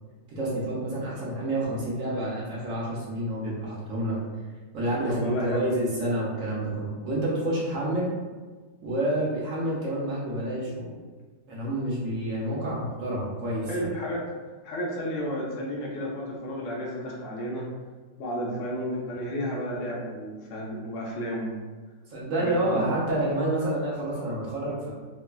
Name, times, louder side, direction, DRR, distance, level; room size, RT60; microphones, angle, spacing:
voice 1, 0.3-4.2 4.7-8.1 8.8-10.9 11.5-13.9 22.1-24.9, right 1 dB, 65° right, -5 dB, 0.8 m, -28 dB
voice 2, 5.1-5.6 13.7-14.3 14.6-17.7 18.2-21.5 22.3-22.9, equal, 70° left, -4 dB, 0.7 m, -32 dB
3.2 x 2.1 x 2.2 m, 1.4 s
omnidirectional pair, 1.9 m